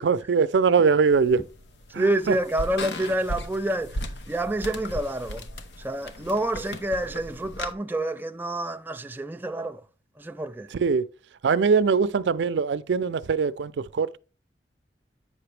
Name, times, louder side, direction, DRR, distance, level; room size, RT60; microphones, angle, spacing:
voice 1, 0.0-1.4 1.9-2.4 10.7-11.1 11.4-14.2, right 5 dB, 80° right, 0.4 m, -22 dB
sound 1, 1.1-7.7, left 1 dB, 80° left, 0.8 m, -37 dB
voice 2, 2.0-3.9 4.3-5.4 5.8-9.8 10.2-10.7, right 1 dB, 10° right, 0.3 m, -28 dB
8.4 x 5.8 x 3.3 m
head